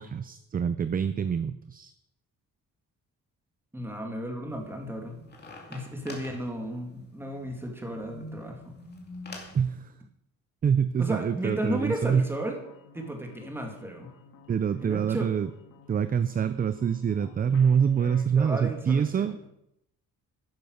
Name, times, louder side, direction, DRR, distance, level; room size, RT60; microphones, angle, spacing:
voice 1, 0.0-1.9 9.5-9.9 10.6-12.3 14.5-15.5 15.9-19.4, right 7 dB, 30° right, 12 dB, 0.4 m, -26 dB
voice 2, 3.7-5.2 5.7-8.8 11.0-12.6 12.9-14.1 14.8-15.3 18.3-19.4, right 1 dB, 5° right, 2 dB, 2.3 m, -34 dB
sound 1, 4.5-9.6, left 1 dB, 30° left, 2.7 m, -46 dB
sound 2, 12.3-18.2, left 6 dB, 85° left, 2.1 m, -52 dB
12.0 x 10.5 x 6.4 m, 0.80 s
wide cardioid pair, 180°, 32 cm